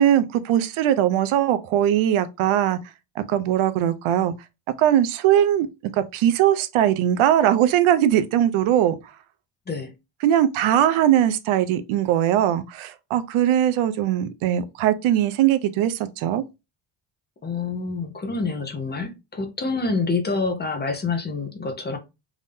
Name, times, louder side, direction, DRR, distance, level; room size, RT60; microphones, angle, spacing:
voice 1, 0.0-2.8 3.2-4.3 4.8-5.7 5.9-9.0 10.2-16.4, right 11 dB, 80° right, 0.6 m, -20 dB
voice 2, 17.4-22.0, left 4 dB, 20° left, 0.7 m, -27 dB
3.7 x 2.7 x 3.4 m
cardioid pair, 140°, 48 cm